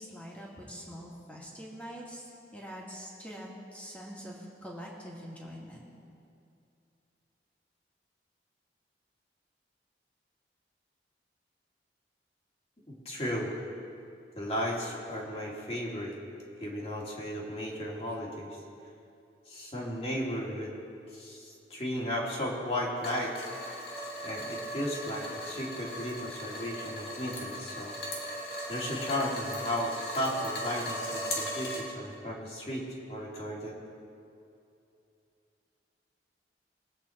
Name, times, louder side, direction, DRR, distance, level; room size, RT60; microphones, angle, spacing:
voice 1, 0.0-5.8, equal, 10° left, -4 dB, 2.2 m, -44 dB
voice 2, 12.9-13.5 14.4-16.1 16.6-18.6 19.5-20.7 21.1-23.3 24.2-27.9 28.7-33.8, equal, 35° left, -4 dB, 2.5 m, -35 dB
sound 1, 23.0-31.8, equal, 65° left, 2.0 m, -38 dB
21.5 x 8.2 x 4.5 m, 2.6 s
head